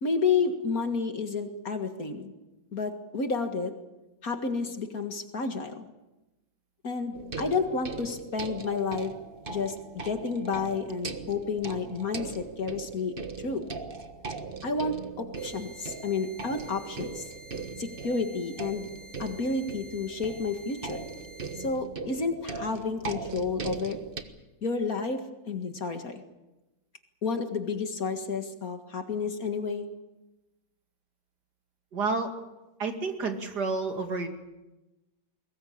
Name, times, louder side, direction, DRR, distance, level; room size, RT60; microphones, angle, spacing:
voice 1, 0.0-2.3 2.7-3.7 4.2-5.9 6.8-9.1 9.5-13.1 13.4-13.7 14.6-17.3 17.8-18.9 19.2-21.0 21.6-24.0 24.6-26.2 27.2-29.9, left 4 dB, 50° left, 6 dB, 2.2 m, -30 dB
sound 1, 7.1-24.2, right 4 dB, 30° right, 1.4 m, -40 dB
sound 2, 15.3-21.7, right 1 dB, 15° left, 2.7 m, -50 dB
voice 2, 31.9-32.3 32.8-34.3, right 3 dB, 60° right, 5 dB, 2.9 m, -30 dB
22.5 x 19.5 x 8.7 m, 1.0 s
omnidirectional pair, 2.1 m